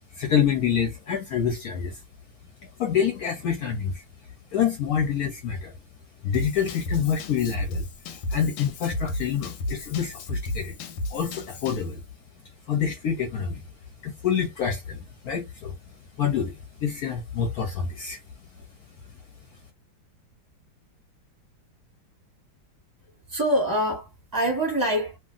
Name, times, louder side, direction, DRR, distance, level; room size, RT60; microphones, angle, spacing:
voice 1, 0.1-2.0 2.8-4.0 4.5-5.7 6.2-10.8 11.1-12.0 12.7-13.6 14.0-15.8 16.2-18.2, left 8 dB, 65° left, 1.0 m, -27 dB
Drum kit / Drum, 6.3-11.9, left 1 dB, 90° left, 1.4 m, -33 dB
voice 2, 23.3-25.2, equal, 15° right, 1.0 m, -25 dB
3.0 x 2.5 x 2.4 m
omnidirectional pair, 2.0 m